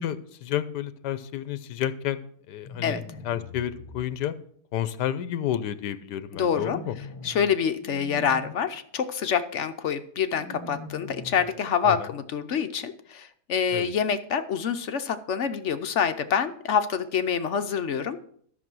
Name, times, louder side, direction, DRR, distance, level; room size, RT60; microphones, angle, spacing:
voice 1, 0.0-4.3 4.7-7.0 11.8-12.1 13.7-13.9, left 11 dB, 85° left, 13 dB, 1.3 m, -31 dB
sound 1, 2.6-4.0 6.4-7.5 7.8-8.5 10.3-11.5, left 2 dB, 25° left, 0.9 m, -41 dB
voice 2, 6.3-6.8 7.2-18.3, left 7 dB, 60° left, 9 dB, 0.8 m, -26 dB
13.5 x 6.2 x 6.1 m, 0.62 s
omnidirectional pair, 1.8 m